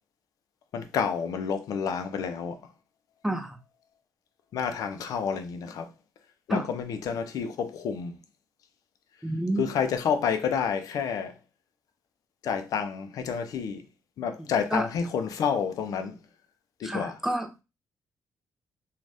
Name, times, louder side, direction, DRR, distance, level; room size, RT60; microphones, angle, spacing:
voice 1, 0.7-2.6 4.5-5.9 6.5-8.2 9.6-11.4 12.4-13.8 14.2-16.2 16.8-17.2, left 7 dB, 70° left, 0.5 m, -29 dB
voice 2, 3.2-3.6 6.5-6.7 9.2-9.7 14.4-14.9 16.8-17.6, right 1 dB, 5° right, 0.5 m, -30 dB
2.6 x 2.3 x 3.3 m
cardioid pair, 130°, 6 cm